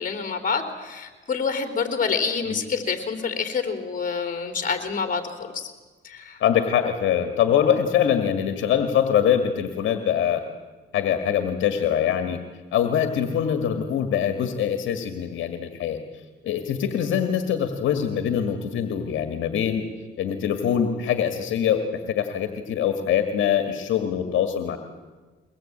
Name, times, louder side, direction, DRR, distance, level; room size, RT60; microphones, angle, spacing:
voice 1, 0.0-5.2 5.5-5.7 6.0-6.4, left 5 dB, 45° left, 6 dB, 3.6 m, -27 dB
voice 2, 6.4-10.4 10.9-12.4 12.7-16.0 16.4-19.8 20.2-24.8, left 9 dB, 75° left, 6 dB, 1.9 m, -23 dB
23.5 x 20.0 x 8.8 m, 1.3 s
cardioid pair, 90°, 20 cm